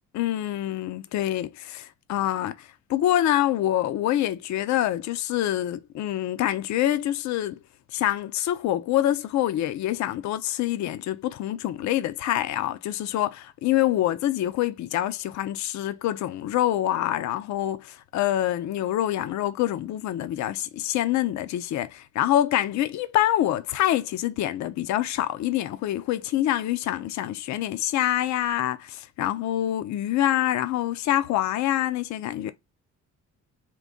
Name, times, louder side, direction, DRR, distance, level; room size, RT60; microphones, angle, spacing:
voice 1, 0.1-7.6 7.9-32.5, left 13 dB, 70° left, 0.5 m, -26 dB
3.7 x 2.6 x 3.7 m
cardioid pair, 90°, 30 cm